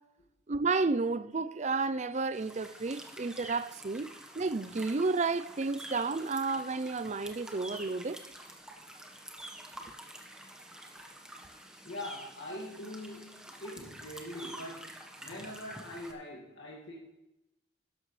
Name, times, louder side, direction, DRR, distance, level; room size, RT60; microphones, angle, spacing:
voice 1, 0.5-4.1 4.3-8.2, right 3 dB, 35° right, 0.5 m, -31 dB
sound 1, 2.3-16.1, right 1 dB, 5° right, 1.2 m, -48 dB
voice 2, 11.8-17.0, left 1 dB, 70° left, 2.2 m, -43 dB
13.0 x 11.0 x 3.3 m
head